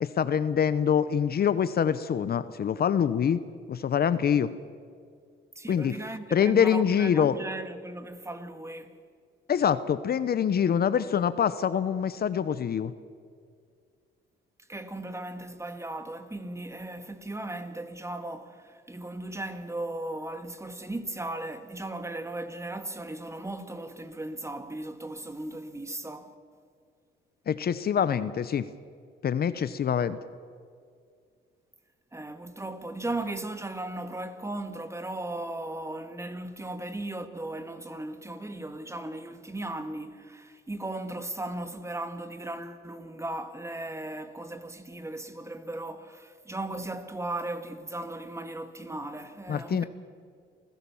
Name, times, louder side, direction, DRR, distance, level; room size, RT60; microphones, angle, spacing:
voice 1, 0.0-3.4 3.7-4.5 5.7-6.0 6.3-7.4 9.5-12.9 27.5-28.7 29.2-30.2 49.5-49.8, left 8 dB, 50° left, 0.8 m, -25 dB
voice 2, 5.6-8.9 14.7-26.3 32.1-49.8, right 2 dB, 15° right, 1.8 m, -37 dB
28.0 x 16.5 x 7.1 m
cardioid pair, 90°, 20 cm